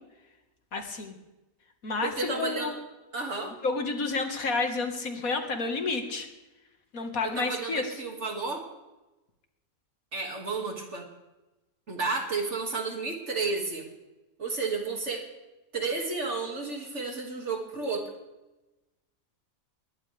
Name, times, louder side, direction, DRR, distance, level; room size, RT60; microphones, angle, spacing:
voice 1, 0.7-1.1 1.8-2.7 3.6-6.3 6.9-7.9, left 3 dB, 80° left, 5 dB, 2.3 m, -30 dB
voice 2, 2.0-2.8 3.1-3.5 7.2-8.6 10.1-11.1 11.9-13.9 14.4-15.3 15.7-18.1, right 3 dB, 55° right, 2 dB, 2.7 m, -32 dB
21.0 x 17.5 x 3.5 m, 1.0 s
omnidirectional pair, 1.4 m